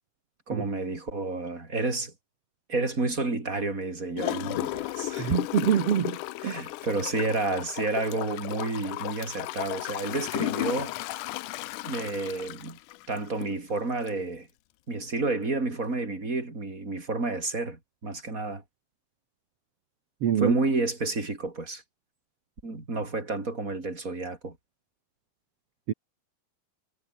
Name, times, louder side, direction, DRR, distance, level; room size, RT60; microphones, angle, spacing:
voice 1, 0.5-2.1 2.7-5.3 5.6-5.7 6.4-11.2 11.8-12.8 13.1-14.5 14.9-18.6 20.4-21.8 22.6-24.6, right 3 dB, 20° right, 4.9 m, -30 dB
Gurgling / Toilet flush, 4.2-13.6 14.1-14.2, left 18 dB, 90° left, 1.8 m, -34 dB
voice 2, 5.2-6.2 6.4-6.6 20.2-20.6 25.9-26.0, right 9 dB, 55° right, 1.9 m, -25 dB
omnidirectional pair, 4.5 m